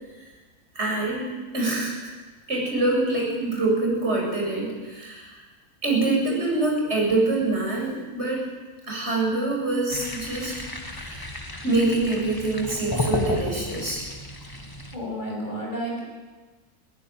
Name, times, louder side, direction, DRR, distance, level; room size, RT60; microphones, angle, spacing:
voice 1, 0.7-1.2 1.5-2.1 2.5-5.4 5.8-8.5 8.9-10.5 10.9-14.0, right 2 dB, 45° right, -2 dB, 8.0 m, -25 dB
sound 1, 9.9-15.0, left 1 dB, 15° left, 1.8 m, -32 dB
voice 2, 14.9-16.0, equal, 30° left, -2 dB, 7.7 m, -31 dB
20.5 x 17.5 x 9.2 m, 1.3 s
omnidirectional pair, 1.6 m